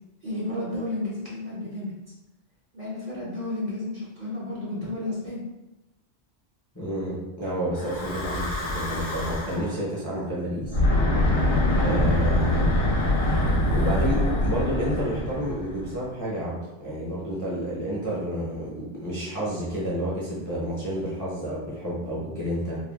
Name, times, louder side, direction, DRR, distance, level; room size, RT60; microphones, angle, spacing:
voice 1, 0.2-1.9 2.7-5.4, left 2 dB, 50° right, -7 dB, 0.7 m, -32 dB
voice 2, 6.7-10.8 11.8-12.7 13.7-22.8, equal, 20° left, -8 dB, 0.5 m, -30 dB
Breathing / Wind, 7.8-9.7 10.6-16.0, left 1 dB, 65° left, 0.8 m, -24 dB
3.2 x 2.2 x 2.2 m, 1.0 s
omnidirectional pair, 1.1 m